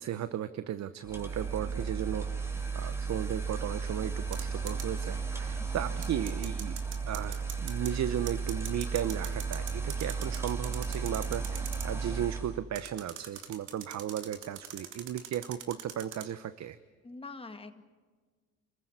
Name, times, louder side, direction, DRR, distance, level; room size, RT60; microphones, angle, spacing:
voice 1, 0.0-2.3 2.7-6.8 7.1-16.8, right 10 dB, 65° right, 13 dB, 0.9 m, -35 dB
sound 1, 1.0-12.6, right 5 dB, 10° right, 3.3 m, -34 dB
sound 2, 4.3-4.8 6.0-7.9 8.3-11.9 12.8-16.2, right 9 dB, 80° right, 2.3 m, -42 dB
voice 2, 17.0-17.8, left 3 dB, 20° left, 7 dB, 2.0 m, -45 dB
28.0 x 15.0 x 9.9 m, 1.5 s
cardioid pair, 90°, 30 cm